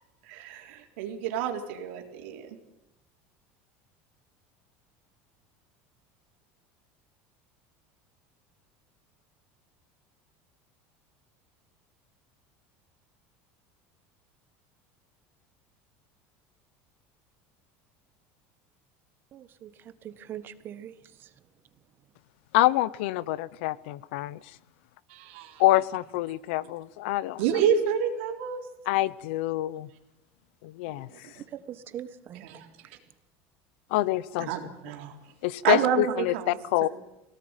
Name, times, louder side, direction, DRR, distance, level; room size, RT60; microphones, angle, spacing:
voice 1, 0.3-2.6 25.1-25.6 27.4-28.6 30.9-31.4 32.4-32.7 34.5-35.1 35.6-36.9, right 8 dB, 85° right, 2 dB, 3.9 m, -29 dB
voice 2, 19.3-19.7 20.0-20.9 21.2-21.3 31.5-32.4, right 10 dB, 35° right, 13 dB, 1.4 m, -41 dB
voice 3, 22.5-24.4 25.6-27.4 28.9-29.9 30.6-31.1 33.9-34.5 35.4-36.9, left 16 dB, 80° left, 20 dB, 0.8 m, -26 dB
21.5 x 18.0 x 9.1 m, 0.91 s
cardioid pair, 145°, 6 cm